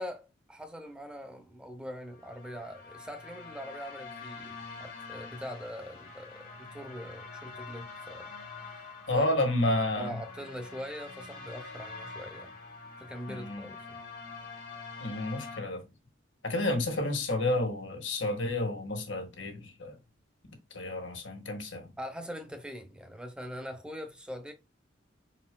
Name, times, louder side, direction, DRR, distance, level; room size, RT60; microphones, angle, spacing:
voice 1, 0.0-8.3 9.1-9.3 9.9-12.5 13.0-14.0 22.0-24.5, equal, 5° right, 0.7 m, -42 dB
sound 1, 2.1-15.6, left 4 dB, 50° left, 1.6 m, -45 dB
voice 2, 9.1-10.1 13.3-13.7 15.0-15.8 16.4-20.0 20.5-21.9, left 1 dB, 80° left, 1.6 m, -30 dB
4.9 x 4.3 x 2.2 m
head